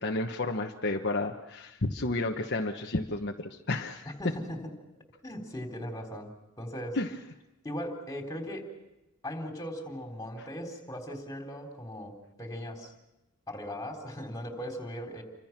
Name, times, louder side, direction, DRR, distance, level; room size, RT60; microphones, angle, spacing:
voice 1, 0.0-4.1 6.9-7.1 10.4-10.5, left 2 dB, 50° left, 2 dB, 1.2 m, -31 dB
voice 2, 4.2-4.6 5.2-6.3 6.6-7.0 7.6-8.6 9.2-12.9 13.5-15.2, equal, 15° left, 3 dB, 3.7 m, -38 dB
28.5 x 25.5 x 6.0 m, 0.95 s
head